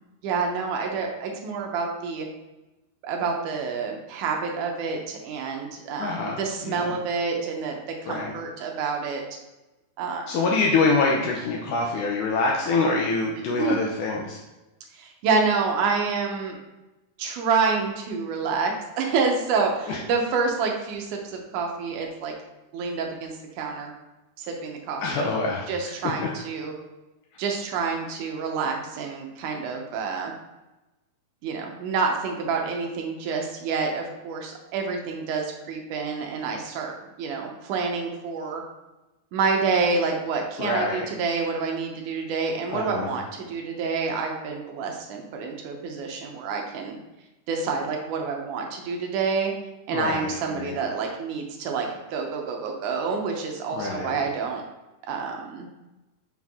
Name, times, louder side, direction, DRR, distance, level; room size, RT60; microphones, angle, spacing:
voice 1, 0.2-2.3 3.0-9.2 10.0-10.5 13.6-13.8 14.9-16.6 17.2-22.3 22.7-23.9 24.4-25.3 25.7-26.7 27.4-30.3 31.4-38.6 39.3-47.0 47.5-49.5 49.9-54.6 55.1-55.7, right 4 dB, 75° right, 1 dB, 2.0 m, -28 dB
voice 2, 6.0-7.0 8.1-8.3 10.3-14.4 19.9-20.0 25.0-25.7 26.2-26.3 40.6-41.1 42.7-43.1 49.9-50.7 53.7-54.2, left 3 dB, 80° left, -1 dB, 1.8 m, -25 dB
6.0 x 4.5 x 3.5 m, 1.0 s
omnidirectional pair, 4.3 m